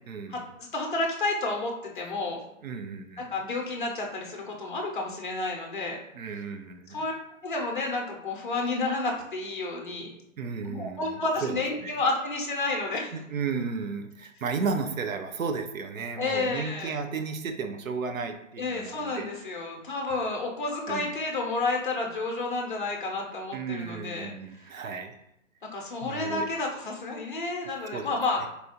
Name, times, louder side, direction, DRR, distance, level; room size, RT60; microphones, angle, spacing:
voice 1, 0.1-0.5 2.6-3.3 6.1-7.0 10.4-12.0 12.9-19.3 20.9-21.2 23.5-25.2 26.0-26.5 27.6-28.2, right 5 dB, 80° right, 6 dB, 0.6 m, -34 dB
voice 2, 0.7-2.4 3.2-6.0 6.9-7.1 7.4-10.1 10.6-13.1 16.2-17.0 18.6-24.3 24.6-24.8 25.7-28.4, left 3 dB, 40° left, 1 dB, 0.5 m, -30 dB
4.1 x 2.3 x 2.8 m, 0.79 s
hypercardioid pair, 175°, 40 cm